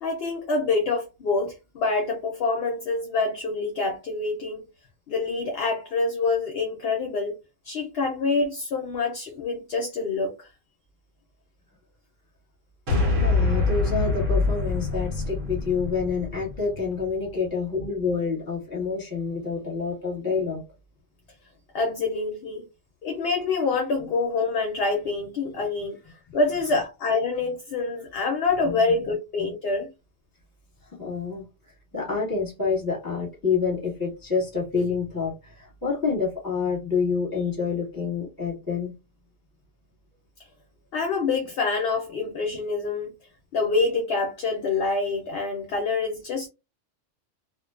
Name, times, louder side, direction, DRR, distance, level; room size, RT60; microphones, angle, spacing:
voice 1, 0.0-4.6 5.1-7.4 7.6-10.5 21.7-22.7 23.0-29.9 40.9-43.1 43.5-46.5, left 3 dB, 65° left, 0.7 m, -26 dB
sound 1, 12.9-17.3, left 3 dB, 75° right, 1.3 m, -25 dB
voice 2, 13.2-20.6 28.6-28.8 29.1-29.2 31.0-38.9, left 5 dB, 20° left, 1.0 m, -28 dB
2.5 x 2.1 x 2.3 m
omnidirectional pair, 1.3 m